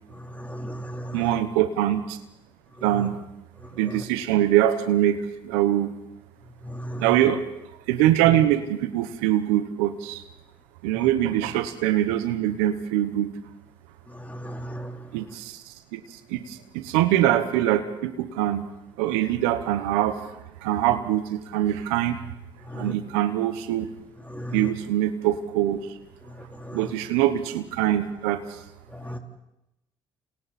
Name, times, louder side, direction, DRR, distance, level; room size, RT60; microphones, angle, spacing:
voice 1, 0.5-1.2 6.8-7.0 14.4-14.9 22.7-22.9 24.3-24.6 26.7-26.8 29.1-29.2, equal, 15° left, 3 dB, 3.9 m, -34 dB
voice 2, 1.1-2.2 2.8-3.2 3.7-5.2 5.4-5.9 7.0-7.4 7.9-10.2 10.8-13.3 15.1-15.6 15.9-16.0 16.3-18.6 19.0-22.2 22.7-23.9 24.5-25.9 26.7-28.4, right 12 dB, 90° right, 10 dB, 1.2 m, -23 dB
29.0 x 27.5 x 4.4 m, 0.88 s
supercardioid pair, 60°, 11 cm